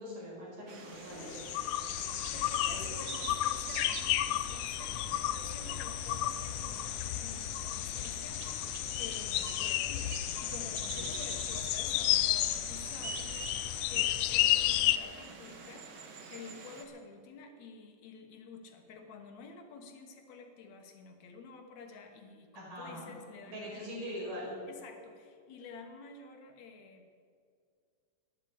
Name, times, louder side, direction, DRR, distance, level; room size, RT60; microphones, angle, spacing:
voice 1, 0.0-1.4 2.9-3.0 11.0-11.2 22.5-23.1 23.4-24.5, equal, 90° right, -4 dB, 6.7 m, -42 dB
sound 1, 0.7-16.8, right 4 dB, 50° right, 1.4 m, -46 dB
sound 2, 1.1-15.0, left 14 dB, 85° left, 1.5 m, -32 dB
voice 2, 2.3-24.2 24.7-27.1, left 4 dB, 65° left, 5 dB, 2.4 m, -50 dB
12.0 x 10.5 x 8.8 m, 2.2 s
omnidirectional pair, 3.7 m